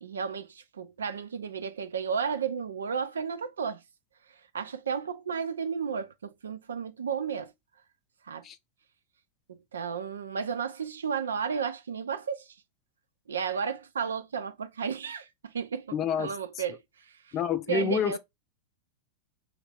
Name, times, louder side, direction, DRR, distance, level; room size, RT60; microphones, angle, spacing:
voice 1, 0.0-3.8 4.5-7.5 8.2-8.5 9.5-12.6 13.3-17.4 17.7-18.2, right 6 dB, 70° right, 0.4 m, -33 dB
voice 2, 15.9-16.3 17.3-18.2, left 6 dB, 30° left, 0.5 m, -28 dB
3.2 x 2.4 x 3.3 m
figure-of-eight pair, 90°, 0 cm